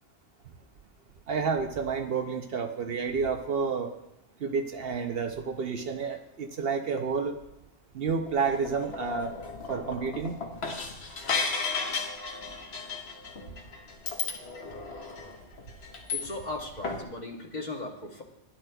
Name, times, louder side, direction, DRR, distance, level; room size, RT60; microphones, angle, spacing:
voice 1, 1.3-3.9 4.4-7.3 7.9-9.3 9.7-10.4, right 5 dB, 60° right, 5 dB, 0.8 m, -30 dB
sound 1, 8.3-16.6 16.8-17.0, left 4 dB, 70° left, 1.3 m, -35 dB
voice 2, 16.1-18.2, left 2 dB, 40° left, 2 dB, 1.1 m, -37 dB
12.5 x 10.5 x 2.3 m, 0.91 s
omnidirectional pair, 1.2 m